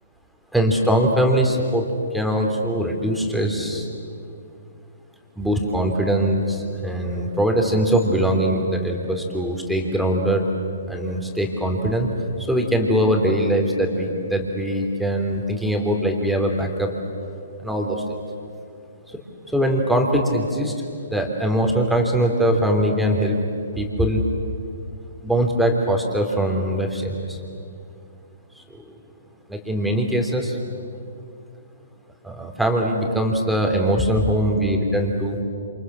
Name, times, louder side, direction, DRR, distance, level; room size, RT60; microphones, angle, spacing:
voice 1, 0.5-1.8 2.1-3.9 5.4-10.5 10.9-12.1 12.4-16.9 17.6-18.2 19.1-19.2 19.5-20.7 21.1-23.4 23.8-24.2 25.2-27.4 28.6-28.8 29.5-30.6 32.2-35.4, right 1 dB, ahead, 1 dB, 3.6 m, -22 dB
28.0 x 28.0 x 7.3 m, 2.5 s
hypercardioid pair, 135°, 0 cm